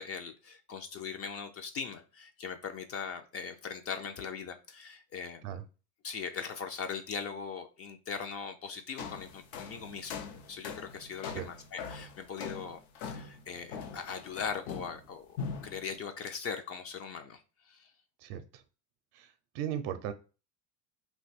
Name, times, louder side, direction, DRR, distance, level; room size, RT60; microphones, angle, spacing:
voice 1, 0.0-5.4 6.0-10.2 10.5-15.4 15.6-17.9, left 6 dB, 35° left, 7 dB, 0.4 m, -40 dB
sound 1, 9.0-15.1 15.4-15.9, left 5 dB, 80° left, 0.7 m, -42 dB
voice 2, 18.2-18.6 19.1-20.1, right 10 dB, 75° right, 9 dB, 0.5 m, -37 dB
2.6 x 2.3 x 4.0 m, 0.33 s
supercardioid pair, 105°, 41 cm